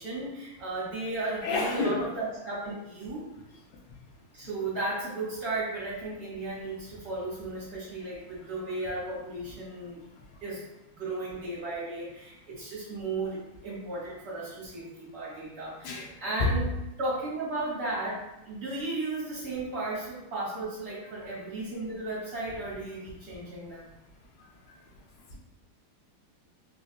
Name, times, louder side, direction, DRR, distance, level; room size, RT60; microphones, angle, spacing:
voice 1, 0.0-3.2 4.3-10.0 10.4-10.6 11.0-16.7 17.0-23.9, right 2 dB, 50° right, -7 dB, 1.5 m, -35 dB
voice 2, 1.4-2.0 15.8-16.1 16.4-16.5, left 3 dB, 75° left, -1 dB, 1.3 m, -27 dB
3.9 x 2.4 x 2.3 m, 0.91 s
omnidirectional pair, 2.3 m